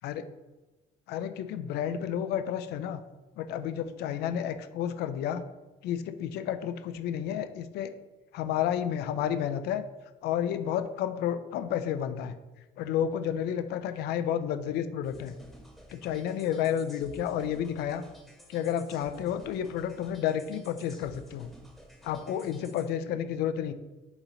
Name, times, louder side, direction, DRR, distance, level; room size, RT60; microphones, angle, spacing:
voice 1, 1.1-3.0 3.4-5.4 5.8-7.9 8.3-9.8 10.2-12.3 12.8-15.3 15.9-18.0 18.5-21.5 22.0-23.7, left 9 dB, 75° left, 10 dB, 0.4 m, -31 dB
sound 1, 15.0-22.9, equal, ahead, 0.9 m, -53 dB
3.8 x 3.0 x 4.0 m, 1.1 s
cardioid pair, 110°, 17 cm